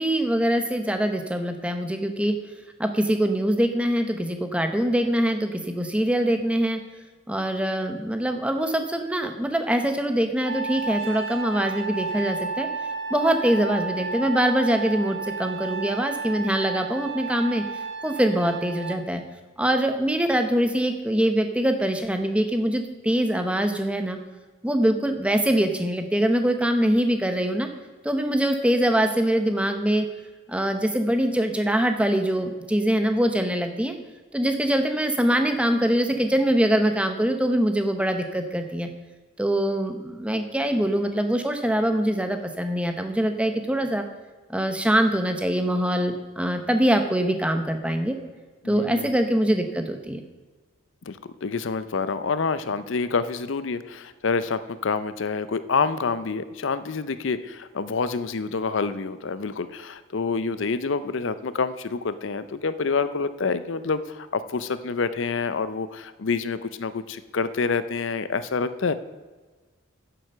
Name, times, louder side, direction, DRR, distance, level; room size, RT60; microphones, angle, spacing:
voice 1, 0.0-2.4 2.8-6.8 7.3-12.7 13.1-17.6 18.0-19.2 19.6-24.2 24.6-27.7 28.0-30.1 30.5-33.9 34.3-38.9 39.4-44.0 44.5-48.2 48.6-50.2, right 1 dB, 5° right, 6 dB, 0.8 m, -23 dB
Trumpet, 10.4-19.0, right 4 dB, 85° right, 2.1 m, -32 dB
voice 2, 48.6-49.1 51.1-68.9, left 4 dB, 65° left, 13 dB, 0.6 m, -27 dB
9.6 x 7.7 x 6.7 m, 1.3 s
head